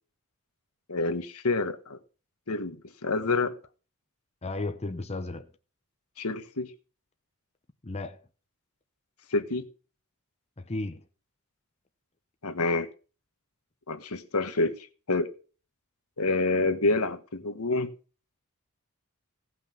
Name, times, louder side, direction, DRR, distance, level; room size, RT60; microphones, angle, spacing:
voice 1, 0.9-2.0 2.5-2.8 3.0-3.5 6.2-6.7 9.3-9.6 12.4-12.9 13.9-15.3 16.2-17.9, left 3 dB, 85° left, 1.5 m, -27 dB
voice 2, 4.4-5.5 7.8-8.2 10.6-11.0, left 2 dB, 30° left, 0.9 m, -34 dB
17.5 x 5.8 x 5.9 m
head